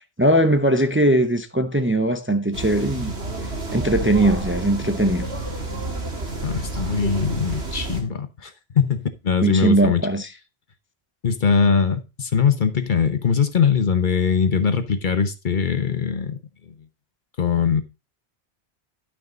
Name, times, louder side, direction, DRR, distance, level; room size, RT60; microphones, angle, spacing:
voice 1, 0.2-3.1 3.7-5.3 9.4-10.3, right 1 dB, 15° right, 0.7 m, -20 dB
sound 1, 2.5-8.0, right 2 dB, 90° right, 2.2 m, -30 dB
voice 2, 6.4-10.0 11.2-16.4 16.7-16.8 17.4-17.8, left 6 dB, 50° left, 1.0 m, -21 dB
11.5 x 6.2 x 3.9 m
omnidirectional pair, 1.1 m